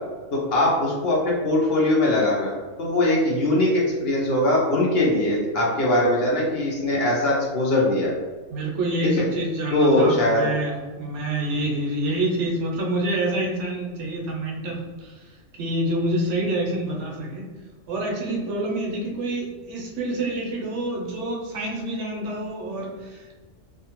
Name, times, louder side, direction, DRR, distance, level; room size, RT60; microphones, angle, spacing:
voice 1, 0.3-2.5 2.8-8.1 9.7-10.4, left 1 dB, 60° left, -4 dB, 0.8 m, -21 dB
voice 2, 8.5-17.5 17.9-23.4, right 1 dB, 70° right, -2 dB, 0.9 m, -27 dB
2.5 x 2.3 x 2.9 m, 1.3 s
omnidirectional pair, 1.3 m